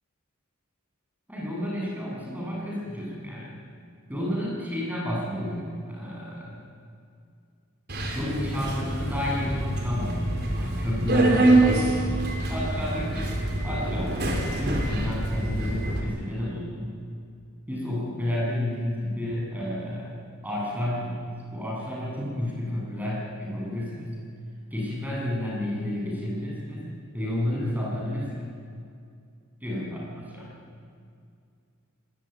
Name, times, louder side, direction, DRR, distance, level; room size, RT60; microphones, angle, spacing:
voice 1, 1.3-3.5 4.1-6.6 8.1-12.1 12.5-13.2 13.6-14.2 14.6-16.9 17.7-21.2 21.5-24.1 24.7-28.4 29.6-30.5, left 1 dB, 10° right, -4 dB, 8.0 m, -31 dB
Subway metro underground, 7.9-16.0, right 2 dB, 50° right, 4.5 m, -25 dB
25.0 x 20.0 x 9.6 m, 2.3 s
head